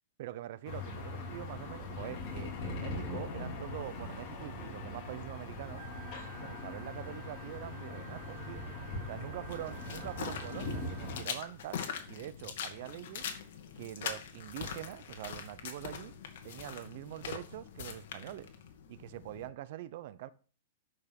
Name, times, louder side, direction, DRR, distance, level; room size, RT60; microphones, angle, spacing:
voice 1, 0.2-5.8 6.4-8.7 9.1-11.8 12.1-13.2 13.8-16.2 16.4-18.5 18.9-20.3, right 13 dB, 50° right, 0.8 m, -44 dB
sound 1, 0.6-11.2, left 2 dB, 35° left, 3.9 m, -41 dB
Wind instrument woodwind instrument, 5.8-11.2, right 16 dB, 35° right, 1.8 m, -54 dB
sound 2, 9.5-19.5, left 7 dB, 60° left, 2.2 m, -43 dB
12.0 x 5.5 x 6.0 m
hypercardioid pair, 155°, 0 cm